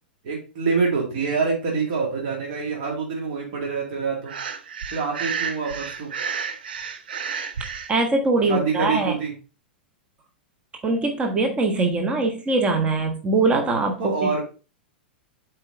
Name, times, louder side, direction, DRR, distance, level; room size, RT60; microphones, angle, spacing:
voice 1, 0.2-4.4 4.9-6.1 8.5-9.3 14.0-14.4, right 5 dB, 50° right, -2 dB, 2.4 m, -26 dB
Breathing, 4.2-7.9, right 6 dB, 65° right, 0.8 m, -31 dB
voice 2, 7.9-9.1 10.8-14.1, right 3 dB, 20° right, 4 dB, 1.2 m, -22 dB
7.9 x 4.5 x 3.9 m, 0.35 s
figure-of-eight pair, 95°, 6 cm